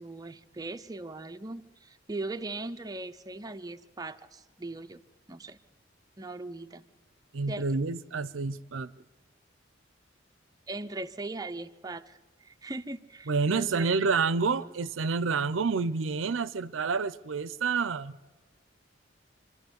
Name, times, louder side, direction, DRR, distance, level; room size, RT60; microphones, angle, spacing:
voice 1, 0.0-5.0 5.3-5.6 6.2-6.9 7.5-7.7 10.7-14.0 14.6-14.7, right 2 dB, 20° right, 0.6 m, -39 dB
voice 2, 7.3-8.9 13.3-18.2, right 4 dB, 85° right, 0.6 m, -28 dB
26.5 x 12.0 x 8.1 m
head